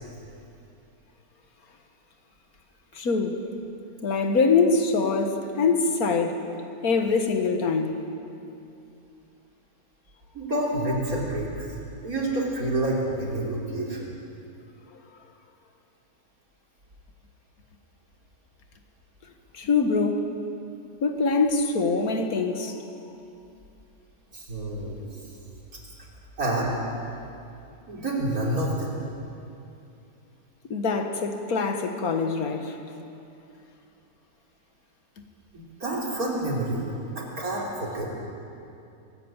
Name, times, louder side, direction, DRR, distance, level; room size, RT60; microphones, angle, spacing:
voice 1, 2.9-3.4 4.0-6.4 6.8-8.0 19.5-20.3 21.0-22.8 30.7-32.8, left 4 dB, 60° left, 5 dB, 2.0 m, -24 dB
voice 2, 10.3-11.5 12.0-14.1 24.3-25.0 26.4-26.8 27.9-28.9 35.5-36.8 37.1-38.1, right 1 dB, 55° right, -3 dB, 3.9 m, -28 dB
23.5 x 13.5 x 9.0 m, 2.7 s
omnidirectional pair, 1.8 m